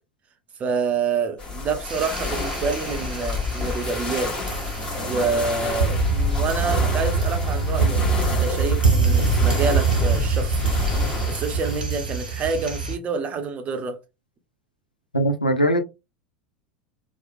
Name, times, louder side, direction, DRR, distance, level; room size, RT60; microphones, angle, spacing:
voice 1, 0.6-4.3 5.0-10.8 11.3-14.0, right 4 dB, 30° right, 0.6 m, -27 dB
sound 1, 1.4-11.8, left 4 dB, 20° left, 1.0 m, -30 dB
sound 2, 1.9-13.0, right 4 dB, 90° right, 0.7 m, -24 dB
Bowed string instrument, 4.4-9.6, right 4 dB, 60° left, 0.9 m, -37 dB
voice 2, 15.1-15.8, right 1 dB, 90° left, 0.4 m, -20 dB
2.9 x 2.0 x 2.5 m
figure-of-eight pair, 80°, 5 cm